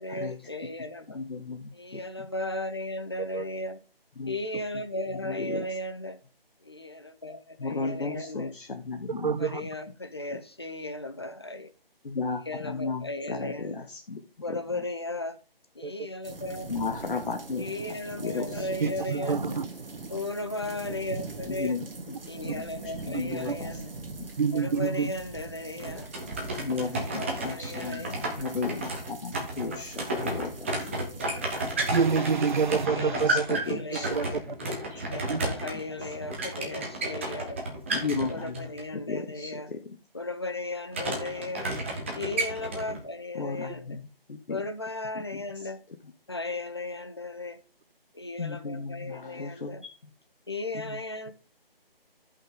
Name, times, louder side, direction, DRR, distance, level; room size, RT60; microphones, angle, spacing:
voice 1, 0.0-1.2 1.7-3.8 4.3-6.2 6.6-8.5 9.4-11.7 12.5-13.8 14.4-15.4 15.8-16.7 17.6-19.6 20.1-21.8 22.3-23.9 24.5-26.1 27.0-28.2 29.7-29.8 32.9-34.4 35.0-37.6 38.3-39.7 40.1-41.7 42.1-43.9 44.5-45.8 46.3-47.6 48.1-49.8 50.5-51.3, left 2 dB, 25° left, 0.6 m, -36 dB
voice 2, 1.1-2.3 4.2-4.4 5.1-5.8 7.6-9.7 10.3-10.4 12.0-14.8 16.6-19.0 19.4-19.7 21.5-22.2 22.4-23.8 24.2-24.3 26.6-31.2 32.9-36.1 37.9-40.0 43.3-44.6 45.1-46.1 48.4-50.1 50.7-51.3, left 4 dB, 60° left, 1.1 m, -36 dB
voice 3, 9.2-9.6 15.8-15.9 18.8-19.7 23.5-23.6 24.4-25.1 31.9-33.6 34.1-34.3 35.3-35.4, right 5 dB, 50° right, 0.5 m, -26 dB
sound 1, 16.2-32.9, right 3 dB, 65° right, 1.3 m, -42 dB
sound 2, 25.8-38.8 40.9-43.0, right 2 dB, 15° right, 0.9 m, -33 dB
11.5 x 5.6 x 3.7 m
figure-of-eight pair, 160°, 30 cm